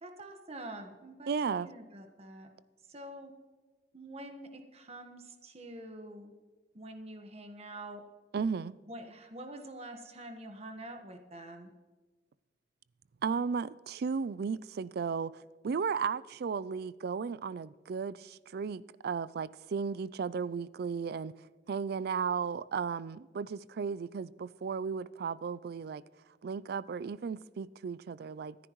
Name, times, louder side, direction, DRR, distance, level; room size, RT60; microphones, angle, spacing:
voice 1, 0.0-1.3 1.6-2.5 2.9-3.3 3.9-6.3 6.7-8.0 8.9-11.7, right 1 dB, 35° right, 5 dB, 1.4 m, -46 dB
voice 2, 1.3-1.7 8.3-8.7 13.2-21.3 21.7-26.0 26.4-28.6, right 5 dB, 60° right, 19 dB, 0.4 m, -35 dB
25.0 x 10.0 x 3.1 m, 1.3 s
head